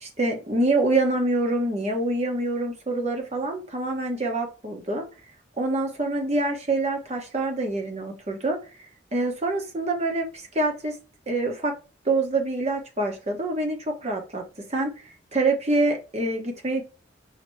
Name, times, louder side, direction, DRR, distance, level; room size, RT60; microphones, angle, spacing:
voice 1, 0.0-5.1 5.6-8.6 9.1-11.0 11.3-11.7 12.0-14.4 14.7-16.8, right 2 dB, 35° right, 1.1 m, -26 dB
5.7 x 2.9 x 3.2 m
head